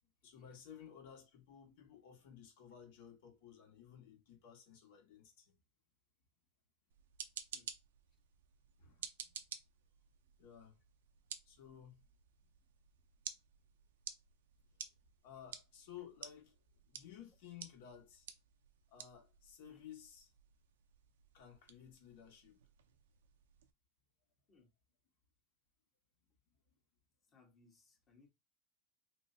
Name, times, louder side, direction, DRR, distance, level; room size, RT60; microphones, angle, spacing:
voice 1, 0.2-5.6 8.8-9.4 10.4-10.8 11.4-12.0 15.2-16.6 16.9-18.3 18.9-20.3 21.3-22.6 26.7-26.8, left 9 dB, 70° left, 1.7 m, -56 dB
sound 1, 6.9-23.7, right 8 dB, 90° right, 0.5 m, -53 dB
voice 2, 27.3-28.3, left 4 dB, 30° left, 1.4 m, -67 dB
3.7 x 3.0 x 2.8 m
supercardioid pair, 130°, 0 cm